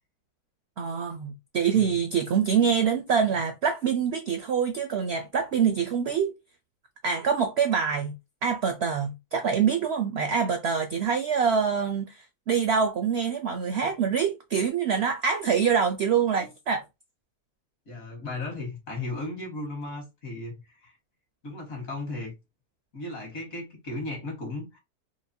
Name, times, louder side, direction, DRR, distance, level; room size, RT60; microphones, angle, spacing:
voice 1, 0.8-6.3 7.0-8.2 8.4-16.8, right 6 dB, 70° right, 0.6 m, -25 dB
voice 2, 17.9-21.0 21.4-22.3 22.9-24.8, left 2 dB, 60° left, 2.0 m, -36 dB
4.7 x 2.2 x 2.6 m
omnidirectional pair, 1.6 m